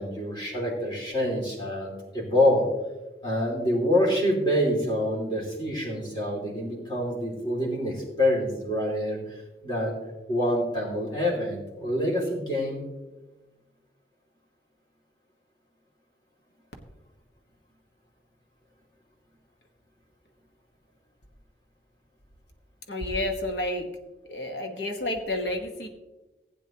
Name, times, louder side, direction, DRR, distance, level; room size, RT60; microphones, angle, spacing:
voice 1, 0.0-2.7 3.2-9.9 10.3-12.9, left 1 dB, 25° left, -2 dB, 2.5 m, -26 dB
voice 2, 22.9-23.9 24.3-25.9, left 1 dB, 75° left, 4 dB, 1.3 m, -30 dB
16.0 x 9.1 x 2.9 m, 1.1 s
head